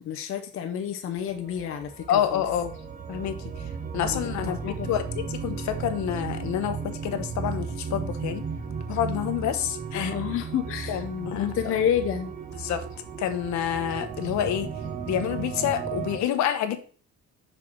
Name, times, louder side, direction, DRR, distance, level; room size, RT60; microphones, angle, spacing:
voice 1, 0.0-2.4 4.1-4.9 9.9-11.0 11.3-12.3, left 9 dB, 45° left, 6 dB, 0.7 m, -29 dB
sound 1, 1.2-16.2, right 6 dB, 25° right, 0.9 m, -35 dB
voice 2, 2.1-2.7 3.1-3.5 3.9-5.0 5.3-8.4 8.9-10.1 10.9-11.5 12.6-12.9 13.2-14.7 15.1-16.8, left 10 dB, 70° left, 9 dB, 1.1 m, -28 dB
6.2 x 4.6 x 6.1 m, 0.41 s
cardioid pair, 175°, 30 cm